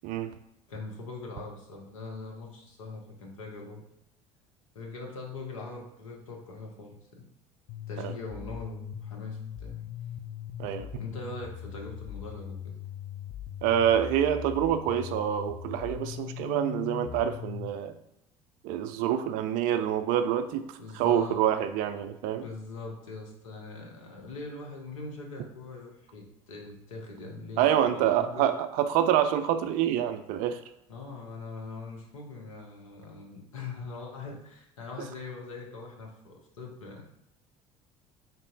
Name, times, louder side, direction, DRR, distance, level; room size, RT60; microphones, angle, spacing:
voice 1, 0.0-0.3 8.0-8.1 10.6-10.9 13.6-17.9 18.6-20.7 20.9-22.4 27.6-30.6, right 10 dB, 55° right, 9 dB, 0.4 m, -26 dB
voice 2, 0.7-3.9 4.7-7.3 7.9-9.8 11.0-12.7 20.8-21.5 22.4-28.5 30.9-37.0, left 3 dB, 75° left, 1 dB, 0.8 m, -42 dB
sound 1, 7.7-17.7, left 10 dB, 50° left, 0.4 m, -40 dB
3.9 x 2.0 x 3.8 m, 0.84 s
figure-of-eight pair, 65°, 18 cm